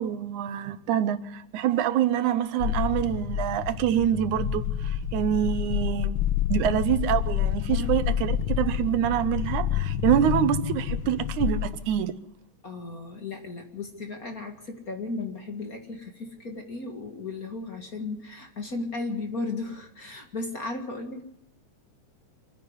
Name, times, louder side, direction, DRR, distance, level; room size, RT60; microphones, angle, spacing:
voice 1, 0.0-6.2 6.5-12.2, right 10 dB, 90° right, 2.4 m, -26 dB
sound 1, 2.6-12.0, left 10 dB, 60° left, 1.5 m, -28 dB
voice 2, 12.6-21.2, left 3 dB, 35° left, 1.9 m, -35 dB
26.0 x 10.5 x 9.7 m
omnidirectional pair, 3.3 m